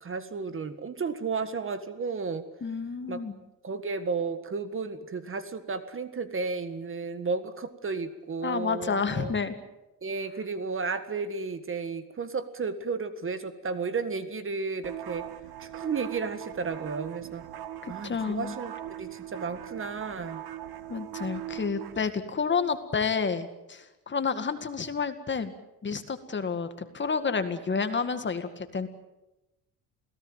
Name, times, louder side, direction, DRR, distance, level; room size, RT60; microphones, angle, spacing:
voice 1, 0.0-2.4 3.1-3.2 3.6-9.3 10.0-15.3 15.6-17.4 17.9-18.7 19.0-20.4, right 4 dB, 30° right, 11 dB, 1.7 m, -33 dB
voice 2, 2.6-3.4 8.4-9.5 17.8-18.5 20.9-25.5 25.8-28.9, left 5 dB, 30° left, 9 dB, 2.0 m, -30 dB
sound 1, 14.8-22.0, right 12 dB, 65° right, 1.8 m, -40 dB
28.0 x 18.0 x 9.1 m, 0.96 s
cardioid pair, 140°, 39 cm